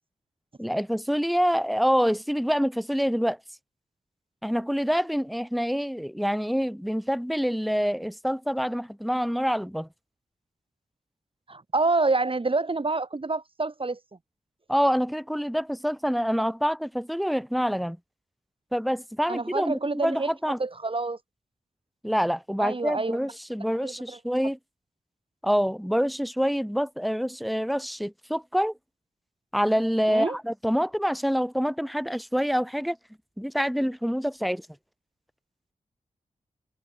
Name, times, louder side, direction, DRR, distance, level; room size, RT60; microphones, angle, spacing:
voice 1, 0.6-3.4 4.4-9.9 14.7-18.0 18.7-20.6 22.0-24.6 25.4-28.7 29.5-33.0 33.4-34.7, equal, ahead, 2.8 m, -26 dB
voice 2, 11.5-14.0 19.3-20.3 20.6-21.2 22.6-23.2 23.8-23.9 30.1-30.4, right 3 dB, 40° right, 5.8 m, -27 dB
cardioid pair, 55°, 14 cm